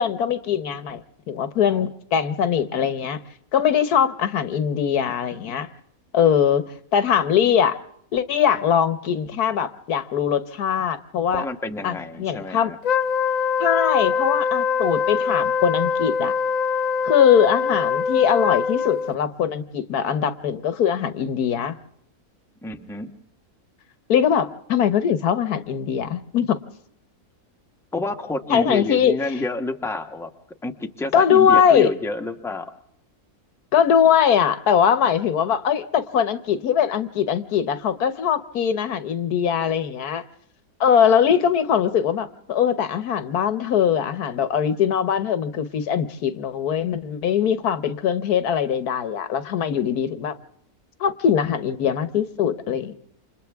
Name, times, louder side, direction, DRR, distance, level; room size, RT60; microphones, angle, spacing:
voice 1, 0.0-3.2 3.5-5.7 6.1-6.6 6.9-7.8 8.1-11.4 11.8-12.7 13.6-16.3 17.0-21.8 24.1-26.6 28.5-29.1 31.1-31.9 33.7-40.2 40.8-50.3 51.0-52.9, left 8 dB, 80° left, 13 dB, 1.5 m, -21 dB
voice 2, 11.3-12.8 22.6-23.1 27.9-30.3 30.6-32.7, left 2 dB, ahead, 5 dB, 1.0 m, -29 dB
Wind instrument woodwind instrument, 12.8-19.2, left 6 dB, 60° left, 1.3 m, -23 dB
29.0 x 26.0 x 3.5 m, 0.68 s
omnidirectional pair, 1.6 m